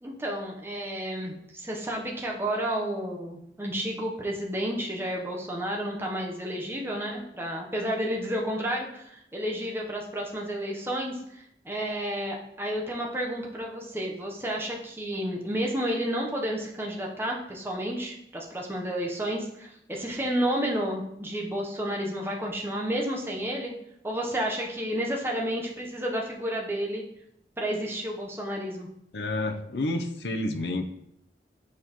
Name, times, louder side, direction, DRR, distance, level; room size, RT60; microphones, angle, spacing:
voice 1, 0.0-23.7 24.0-27.0 27.6-28.9, equal, 15° right, -1 dB, 0.8 m, -31 dB
voice 2, 29.1-30.8, left 2 dB, 75° left, 6 dB, 0.6 m, -29 dB
7.4 x 4.3 x 3.0 m, 0.77 s
head